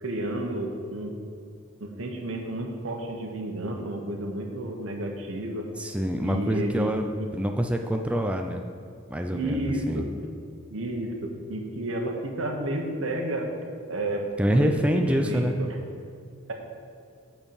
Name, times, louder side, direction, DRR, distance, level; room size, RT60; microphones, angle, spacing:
voice 1, 0.0-1.1 1.8-5.7 6.2-6.9 7.2-7.3 9.3-10.1 10.7-13.5 13.9-14.2 14.5-15.7, right 1 dB, 70° right, 2 dB, 1.1 m, -31 dB
voice 2, 5.8-8.6 9.1-10.0 14.4-15.6, equal, 5° right, 4 dB, 0.4 m, -26 dB
8.1 x 4.5 x 7.0 m, 2.4 s
head